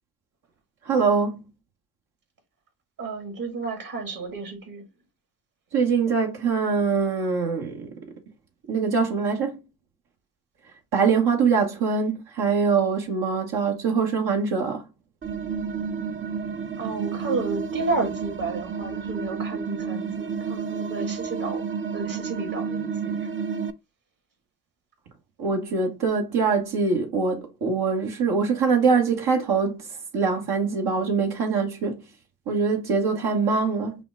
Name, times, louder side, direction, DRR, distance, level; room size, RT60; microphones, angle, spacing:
voice 1, 0.8-1.4 5.7-7.9 8.7-9.6 10.9-14.8 25.4-29.9 30.1-32.0 32.5-34.0, right 5 dB, 75° right, 1.3 m, -23 dB
voice 2, 3.0-4.9 16.8-21.7 21.9-23.3, right 3 dB, 55° right, 2.1 m, -32 dB
sound 1, 15.2-23.7, right 6 dB, 30° right, 0.5 m, -30 dB
5.8 x 2.2 x 3.7 m
supercardioid pair, 55°, 39 cm